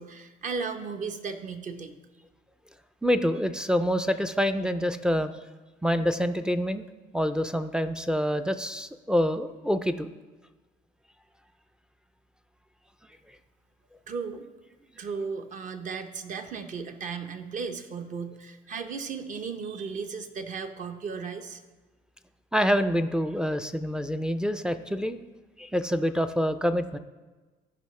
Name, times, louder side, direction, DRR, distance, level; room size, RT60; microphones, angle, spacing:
voice 1, 0.0-1.9 14.1-14.4 15.0-21.6, right 5 dB, 50° right, 7 dB, 0.8 m, -35 dB
voice 2, 3.0-5.4 5.8-6.8 7.1-10.1 22.5-25.2 25.6-27.0, equal, 5° right, 9 dB, 0.4 m, -26 dB
14.0 x 5.4 x 3.2 m, 1.2 s
cardioid pair, 110°, 17 cm